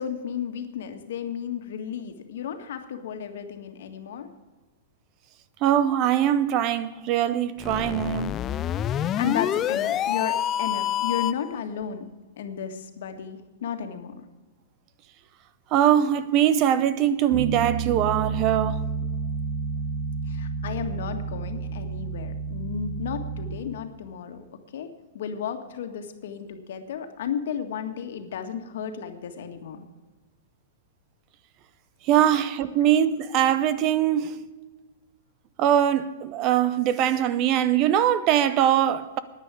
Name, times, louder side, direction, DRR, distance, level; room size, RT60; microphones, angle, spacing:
voice 1, 0.0-4.3 9.2-12.0 12.4-14.2 20.3-24.4 24.7-29.9 32.8-32.9, left 8 dB, 65° left, 1.7 m, -33 dB
voice 2, 5.6-8.4 15.7-18.8 32.0-34.4 35.6-39.2, right 10 dB, 30° right, 0.6 m, -22 dB
sound 1, 7.6-11.5, left 11 dB, 20° left, 0.3 m, -27 dB
Bass guitar, 17.3-23.6, right 5 dB, 90° right, 3.4 m, -30 dB
10.5 x 10.0 x 8.3 m
hypercardioid pair, 160°, 0 cm